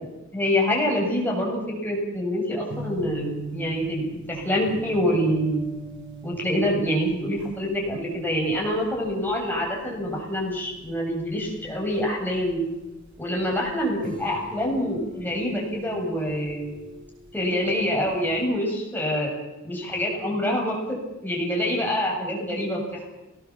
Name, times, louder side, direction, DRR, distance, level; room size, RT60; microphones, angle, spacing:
voice 1, 0.0-5.6 6.2-12.6 13.2-16.7 17.3-19.3 19.7-23.1, equal, 10° left, -2 dB, 7.8 m, -26 dB
sound 1, 2.7-18.4, right 3 dB, 60° right, 5.3 m, -42 dB
23.0 x 20.0 x 7.6 m, 1.0 s
head